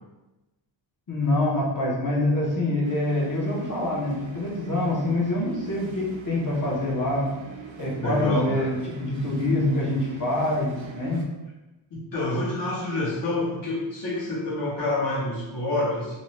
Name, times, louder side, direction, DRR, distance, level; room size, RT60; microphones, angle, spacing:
voice 1, 1.1-7.3 7.8-11.2, left 1 dB, 40° left, -4 dB, 0.7 m, -25 dB
sound 1, 2.8-11.2, right 5 dB, 70° right, 0.5 m, -43 dB
voice 2, 8.0-8.7 11.9-16.1, left 2 dB, 60° left, -7 dB, 1.0 m, -27 dB
2.6 x 2.1 x 3.0 m, 1.1 s
wide cardioid pair, 115°, 47 cm